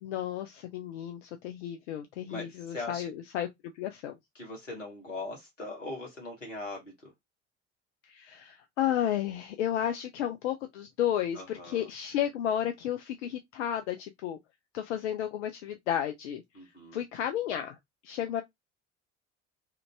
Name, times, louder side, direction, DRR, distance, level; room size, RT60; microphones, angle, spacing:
voice 1, 0.0-4.2 8.0-14.4 14.7-16.4 16.9-17.8 18.0-18.4, left 10 dB, 70° left, 0.5 m, -32 dB
voice 2, 2.3-3.1 4.3-7.1 11.3-11.9 16.5-17.0, left 2 dB, 90° left, 1.1 m, -40 dB
2.8 x 2.5 x 3.2 m
figure-of-eight pair, 55°, 36 cm